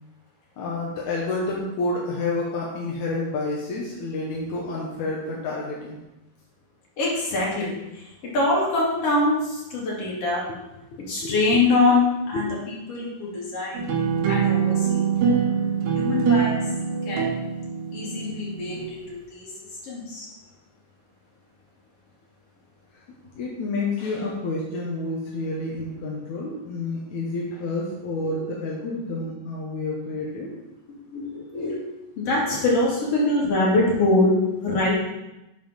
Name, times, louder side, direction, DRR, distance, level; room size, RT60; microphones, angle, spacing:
voice 1, 0.6-6.0 10.5-10.6 10.9-11.6 12.3-12.5 18.7-18.8 23.4-30.5, left 2 dB, 70° left, -3 dB, 1.8 m, -29 dB
voice 2, 7.0-7.7 8.3-10.4 11.1-12.5 12.9-13.8 14.3-15.1 15.9-16.6 17.1-17.3 17.9-19.5 19.8-20.3 28.3-28.4 31.1-31.8 32.2-34.3 34.6-35.0, left 2 dB, 40° left, -5 dB, 3.0 m, -23 dB
sound 1, 13.7-18.8, right 6 dB, 75° right, 3.5 m, -24 dB
7.3 x 5.6 x 5.7 m, 0.95 s
omnidirectional pair, 4.9 m